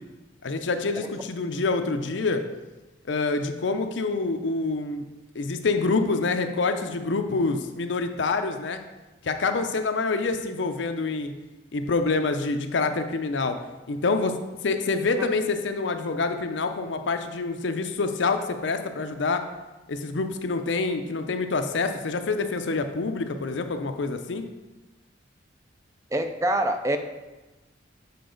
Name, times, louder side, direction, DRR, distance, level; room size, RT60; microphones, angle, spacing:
voice 1, 0.4-2.4 3.1-5.1 5.3-8.8 9.2-11.3 11.7-13.6 13.9-14.4 14.6-19.4 19.9-24.5, left 3 dB, 70° left, 7 dB, 0.5 m, -26 dB
voice 2, 26.1-27.0, right 1 dB, 15° right, 7 dB, 0.4 m, -25 dB
6.8 x 4.6 x 3.9 m, 1.1 s
head